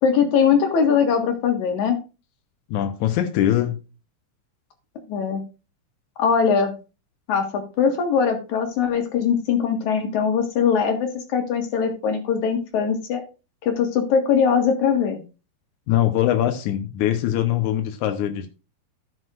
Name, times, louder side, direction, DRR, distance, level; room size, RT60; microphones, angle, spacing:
voice 1, 0.0-2.0 5.1-5.4 6.2-6.7 7.3-13.2 13.6-15.2, left 6 dB, 55° left, 5 dB, 2.7 m, -21 dB
voice 2, 2.7-3.8 15.9-18.5, left 12 dB, 75° left, 6 dB, 1.8 m, -22 dB
15.5 x 6.3 x 2.5 m, 0.30 s
omnidirectional pair, 4.6 m